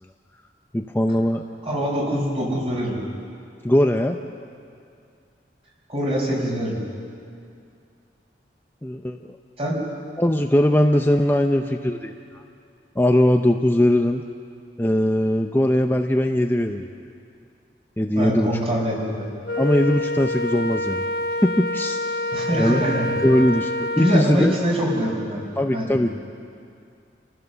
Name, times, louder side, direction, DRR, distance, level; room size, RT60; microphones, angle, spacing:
voice 1, 0.7-1.4 3.6-4.2 8.8-9.4 10.2-12.4 13.0-14.2 14.8-16.9 18.0-18.5 19.6-21.0 21.4-22.0 22.6-22.9 23.2-24.5 25.6-26.2, left 1 dB, 10° left, 4 dB, 0.6 m, -20 dB
voice 2, 1.6-3.0 5.9-6.8 9.6-9.8 18.1-19.2 22.3-23.2 24.0-25.4 25.7-26.0, equal, 35° right, -2 dB, 5.3 m, -24 dB
Wind instrument woodwind instrument, 19.5-24.3, left 1 dB, 60° left, 0.8 m, -27 dB
28.0 x 15.0 x 6.9 m, 2.4 s
head